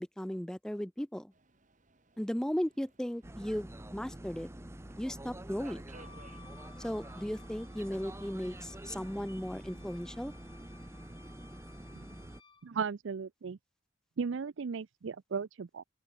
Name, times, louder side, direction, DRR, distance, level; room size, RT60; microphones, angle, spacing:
voice 1, 0.0-1.3 2.2-4.5 5.0-5.9 6.8-10.3, equal, 5° left, 0.4 m, -36 dB
Subway metro underground, 1.3-11.2, right 3 dB, 40° right, 3.6 m, -63 dB
sound 1, 3.2-12.4, right 1 dB, 15° right, 0.9 m, -47 dB
Wind instrument woodwind instrument, 5.9-12.7, left 5 dB, 25° left, 3.9 m, -59 dB
voice 2, 12.6-13.6 14.2-15.8, right 5 dB, 70° right, 0.5 m, -36 dB
open air
head